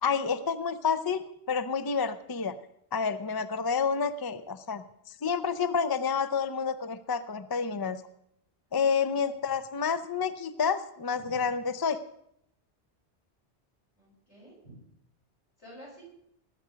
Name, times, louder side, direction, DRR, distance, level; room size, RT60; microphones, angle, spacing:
voice 1, 0.0-2.6 2.9-4.8 5.2-8.0 8.7-12.0, left 6 dB, 30° left, 12 dB, 0.5 m, -29 dB
voice 2, 8.8-9.3 11.2-11.5 14.0-14.8 15.6-16.0, equal, 75° left, -4 dB, 6.5 m, -50 dB
19.5 x 8.0 x 5.1 m, 0.74 s
omnidirectional pair, 1.1 m